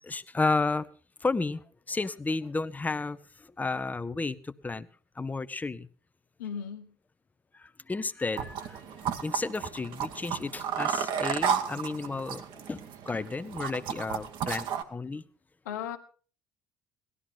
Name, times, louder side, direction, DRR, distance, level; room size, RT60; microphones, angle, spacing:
voice 1, 0.0-0.9 1.2-4.9 5.2-5.9 7.5-15.2, left 3 dB, 15° left, 15 dB, 0.7 m, -32 dB
voice 2, 6.4-6.9 15.6-16.0, left 8 dB, 80° left, 7 dB, 1.2 m, -36 dB
sound 1, 8.4-14.8, right 8 dB, 55° right, 1.3 m, -33 dB
18.0 x 12.5 x 3.8 m, 0.41 s
hypercardioid pair, 60°, 10 cm